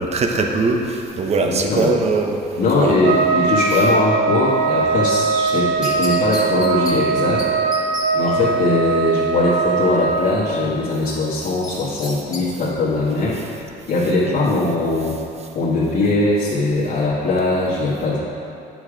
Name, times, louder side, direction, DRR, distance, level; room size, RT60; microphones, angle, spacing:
voice 1, 0.0-2.5 2.8-3.0 8.4-8.5, right 3 dB, 40° right, 3 dB, 1.0 m, -21 dB
voice 2, 1.4-1.9 2.6-7.5 8.1-13.4 13.9-15.2 15.5-18.2, left 2 dB, 55° left, -9 dB, 1.7 m, -20 dB
Trumpet, 3.0-10.3, right 5 dB, 80° right, 0.6 m, -20 dB
sound 1, 5.5-7.0 7.4-7.5 7.7-8.1 11.6-12.4 12.8-12.9, left 2 dB, 20° left, 1.5 m, -31 dB
9.1 x 6.4 x 5.0 m, 2.8 s
cardioid pair, 110°, 17 cm